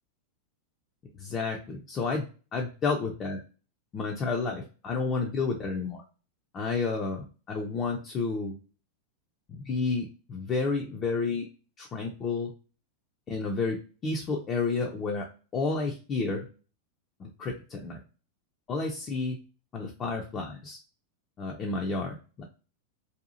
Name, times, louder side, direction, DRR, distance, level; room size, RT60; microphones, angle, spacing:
voice 1, 1.2-2.3 2.5-3.4 3.9-6.0 6.5-8.5 9.5-11.5 11.8-12.5 13.3-15.3 15.5-16.5 17.2-18.0 18.7-19.4 19.7-20.8 21.4-22.4, left 4 dB, 25° left, 0 dB, 0.5 m, -31 dB
2.7 x 2.3 x 2.5 m, 0.35 s
figure-of-eight pair, 90°, 0 cm